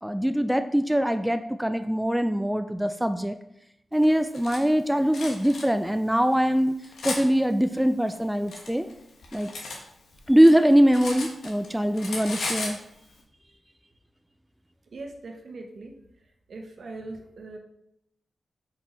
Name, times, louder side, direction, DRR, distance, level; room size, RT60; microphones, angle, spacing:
voice 1, 0.0-3.4 3.9-6.7 7.0-8.9 9.3-9.5 10.3-12.8, equal, 5° right, 9 dB, 0.4 m, -22 dB
Cutlery silverware, 4.0-4.6 5.1-5.6 6.3-7.2 8.1-9.8 10.1-11.7 11.9-12.8, left 3 dB, 85° left, 1.2 m, -35 dB
voice 2, 14.9-15.9 16.5-17.6, right 2 dB, 65° right, 3 dB, 1.1 m, -40 dB
5.5 x 4.7 x 4.5 m, 0.81 s
cardioid pair, 75°, 0 cm